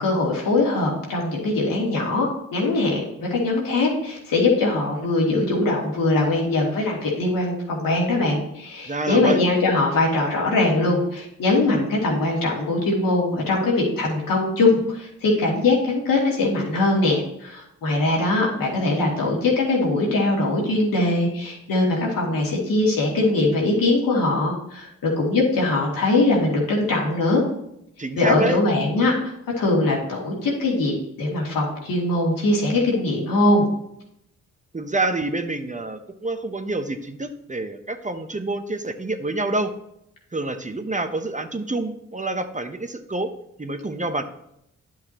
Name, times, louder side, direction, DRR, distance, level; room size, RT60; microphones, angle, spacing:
voice 1, 0.0-27.4 28.2-33.7, left 2 dB, 75° left, -3 dB, 2.4 m, -21 dB
voice 2, 8.9-9.4 28.0-28.6 34.7-39.7 40.3-43.3 43.6-44.2, right 2 dB, 20° right, 7 dB, 0.8 m, -27 dB
9.8 x 5.9 x 2.9 m, 0.78 s
supercardioid pair, 45°, 34 cm